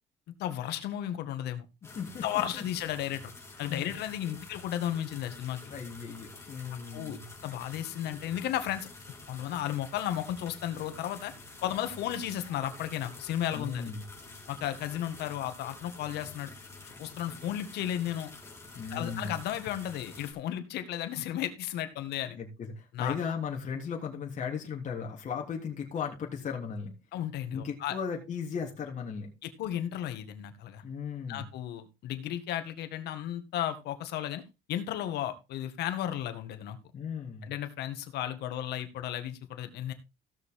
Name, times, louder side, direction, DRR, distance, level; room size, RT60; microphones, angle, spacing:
voice 1, 0.4-1.7 2.2-3.3 3.6-5.6 6.9-7.2 7.4-8.9 9.3-11.3 11.6-13.8 14.5-16.5 17.0-18.3 18.9-22.4 22.9-23.1 27.1-28.0 29.6-30.8 31.3-34.4 34.7-36.8 37.5-39.9, left 11 dB, 75° left, 9 dB, 1.9 m, -34 dB
sound 1, 1.8-20.3, left 3 dB, 15° left, 3.6 m, -49 dB
voice 2, 5.7-7.3 13.5-14.0 18.7-19.3 22.3-26.9 27.5-29.3 30.8-31.5 36.9-37.5, left 6 dB, 45° left, 0 dB, 3.3 m, -36 dB
16.5 x 6.7 x 3.7 m, 0.26 s
cardioid pair, 110°, 17 cm